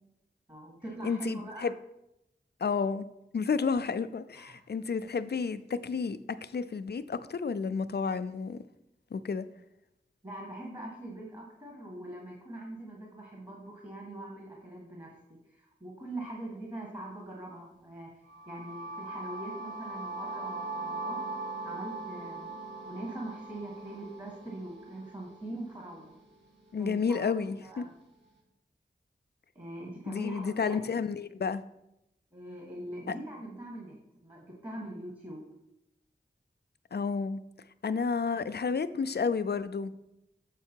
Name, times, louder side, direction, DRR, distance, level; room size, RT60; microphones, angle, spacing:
voice 1, 0.5-1.7 4.3-4.6 10.2-21.2 21.6-26.1 26.8-27.9 29.5-30.8 32.3-33.9 34.2-35.4, right 1 dB, 25° right, -2 dB, 1.6 m, -42 dB
voice 2, 1.0-1.7 2.6-3.1 3.3-8.6 9.1-9.5 26.7-27.8 30.1-31.6 33.1-33.2 36.9-37.4 37.8-40.1, left 5 dB, 60° left, 12 dB, 0.4 m, -31 dB
sound 1, 18.3-26.2, right 3 dB, 80° right, 2.0 m, -40 dB
7.3 x 4.7 x 4.5 m, 0.86 s
wide cardioid pair, 50°, 19 cm